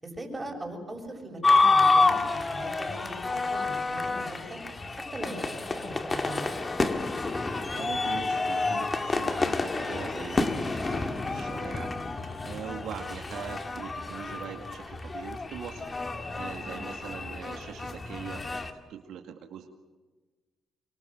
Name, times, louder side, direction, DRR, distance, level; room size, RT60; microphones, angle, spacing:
voice 1, 0.0-4.6 5.1-6.4 16.6-17.0, right 1 dB, 15° right, 2 dB, 7.4 m, -40 dB
sound 1, 1.4-18.7, left 3 dB, 30° left, 2.1 m, -29 dB
voice 2, 7.6-11.9 12.4-15.9 16.3-19.7, right 8 dB, 80° right, 4 dB, 2.2 m, -42 dB
25.5 x 24.0 x 7.7 m, 1.3 s
cardioid pair, 90°, 0 cm